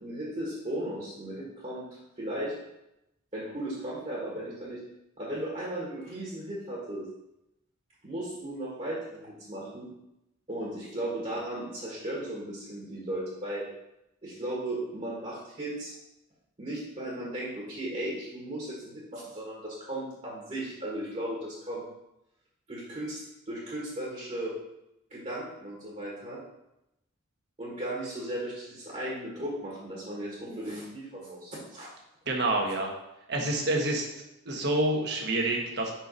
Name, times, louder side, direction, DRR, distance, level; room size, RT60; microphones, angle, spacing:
voice 1, 0.0-1.8 2.2-2.6 3.3-4.8 5.2-7.0 8.0-9.9 10.5-13.7 14.2-15.9 16.6-21.8 22.7-24.5 25.1-26.4 27.6-31.9, right 1 dB, 35° right, -5 dB, 1.6 m, -36 dB
voice 2, 32.3-32.9 33.3-34.0 34.4-35.9, right 1 dB, 50° right, 1 dB, 1.2 m, -27 dB
5.6 x 4.6 x 5.3 m, 0.89 s
head